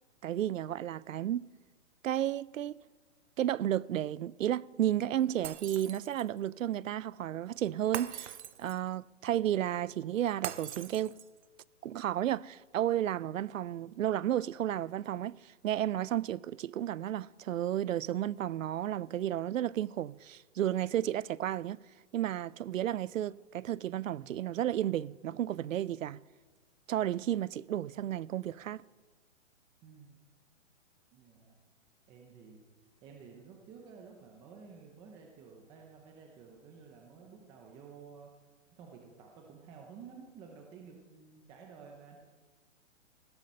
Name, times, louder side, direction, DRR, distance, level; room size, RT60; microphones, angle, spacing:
voice 1, 0.2-1.5 2.0-2.8 3.4-11.2 11.8-21.8 22.1-26.2 26.9-28.8, right 11 dB, 85° right, 0.6 m, -32 dB
Shatter, 5.4-6.4 7.9-8.9 10.4-11.4, right 10 dB, 60° right, 0.9 m, -41 dB
voice 2, 29.8-30.2 31.1-31.6 32.1-32.6 33.0-38.3 38.7-42.2, right 6 dB, 10° right, 0.7 m, -52 dB
16.0 x 12.5 x 5.5 m
hypercardioid pair, 160°, 38 cm